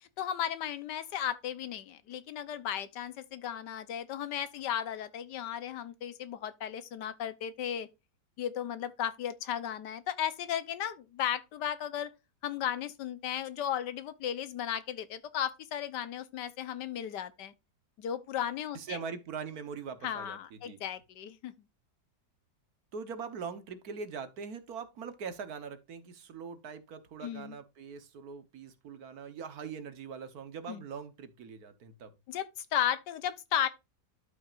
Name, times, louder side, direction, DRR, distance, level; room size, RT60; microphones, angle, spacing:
voice 1, 0.0-7.9 8.4-12.1 12.4-17.5 18.0-19.0 20.0-21.5 27.2-27.6 30.7-30.8 32.3-33.7, left 10 dB, 85° left, 1.5 m, -35 dB
voice 2, 18.7-20.8 22.9-32.1, right 6 dB, 65° right, 1.5 m, -42 dB
12.0 x 5.8 x 2.5 m
omnidirectional pair, 1.8 m